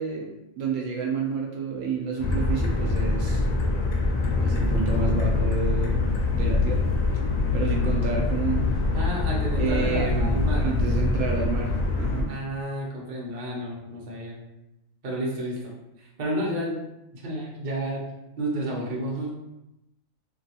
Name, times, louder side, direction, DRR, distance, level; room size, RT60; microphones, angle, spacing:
voice 1, 0.0-3.5 4.4-6.1 6.3-6.9 7.2-8.6 9.6-12.3, right 5 dB, 75° right, 0 dB, 0.9 m, -30 dB
sound 1, 2.2-12.2, left 3 dB, 85° left, 1.0 m, -24 dB
voice 2, 8.9-10.7 12.3-14.4 15.0-15.7 16.0-16.9 17.1-18.1 18.4-19.3, right 1 dB, 45° right, -4 dB, 0.8 m, -31 dB
2.9 x 2.7 x 2.8 m, 0.90 s
omnidirectional pair, 1.4 m